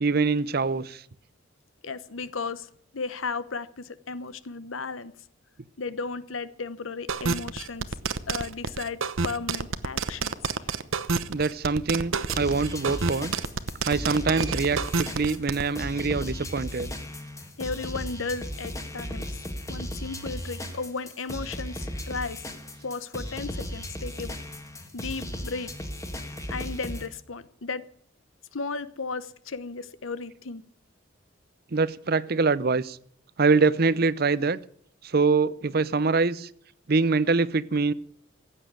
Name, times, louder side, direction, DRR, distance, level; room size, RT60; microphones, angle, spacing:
voice 1, 0.0-1.0 11.3-13.3 13.8-16.9 31.7-33.0 33.4-34.6 35.0-36.5 36.9-37.9, right 4 dB, 50° right, 0.6 m, -24 dB
voice 2, 1.8-5.1 5.8-7.9 8.3-10.5 17.6-19.4 19.7-22.4 22.8-24.3 24.9-25.7 26.5-27.8 28.5-30.6, left 4 dB, 85° left, 1.0 m, -35 dB
sound 1, 7.1-15.6, right 4 dB, 85° right, 0.9 m, -28 dB
sound 2, 12.3-27.1, equal, 15° left, 1.8 m, -36 dB
15.5 x 8.5 x 8.9 m
head